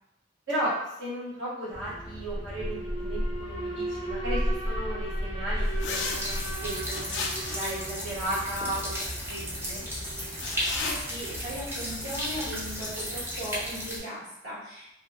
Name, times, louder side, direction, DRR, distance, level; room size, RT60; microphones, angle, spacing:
voice 1, 1.0-7.2 7.5-8.9 9.3-9.8, right 1 dB, 85° right, -10 dB, 1.3 m, -35 dB
Alarm, 1.7-13.7, equal, 40° right, 0.9 m, -35 dB
sound 1, 5.8-6.2 6.9-7.7 10.3-11.0, left 4 dB, 70° left, 0.4 m, -32 dB
sound 2, 6.0-14.0, equal, 15° right, 0.5 m, -35 dB
voice 2, 10.8-14.8, equal, 60° right, -9 dB, 1.3 m, -38 dB
2.5 x 2.2 x 2.3 m, 0.82 s
head